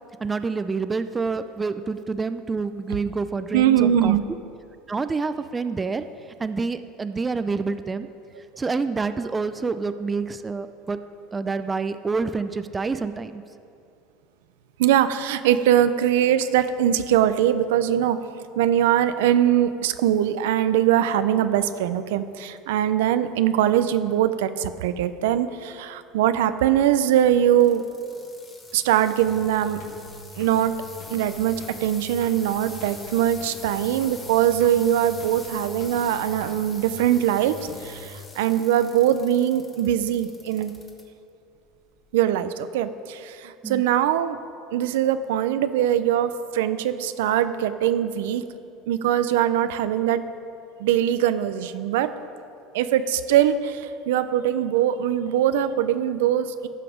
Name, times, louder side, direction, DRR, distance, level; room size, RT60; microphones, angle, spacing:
voice 1, 0.2-4.1 4.9-6.0 6.4-8.1 8.6-11.0 11.3-13.4 43.6-43.8, right 4 dB, 20° right, 11 dB, 0.4 m, -27 dB
voice 2, 3.5-4.2 14.8-27.8 28.7-29.8 30.4-30.7 31.1-37.5 37.8-40.7 42.1-44.4 44.7-48.4 48.9-50.2 50.8-52.1 52.7-56.7, right 11 dB, 90° right, 11 dB, 0.5 m, -22 dB
sound 1, 27.6-41.0 41.6-42.0 42.7-42.8, left 3 dB, 20° left, 1.6 m, -44 dB
sound 2, 29.2-29.5 29.8-30.1 30.4-30.7 31.0-31.3 31.6-31.9 32.2-32.5 32.8-33.1 33.4-33.7 34.0-34.3 34.6-34.9 35.2-35.5 35.8-36.1 36.4-36.7 37.0-37.3 37.6-37.9, left 4 dB, 70° left, 2.0 m, -43 dB
14.5 x 5.9 x 5.0 m, 2.5 s
supercardioid pair, 120°, 0 cm